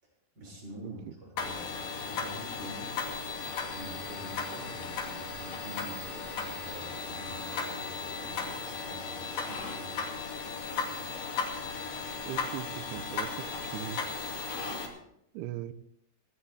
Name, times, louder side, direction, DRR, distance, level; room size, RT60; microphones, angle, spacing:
voice 1, 0.0-3.0 3.7-10.4, right 1 dB, 25° right, -3 dB, 7.4 m, -47 dB
sound 1, 1.4-14.9, left 4 dB, 55° left, 3.8 m, -36 dB
voice 2, 12.3-13.5 13.7-14.0 15.3-15.7, right 12 dB, 80° right, 13 dB, 2.5 m, -39 dB
17.5 x 17.5 x 3.5 m, 0.75 s
omnidirectional pair, 5.2 m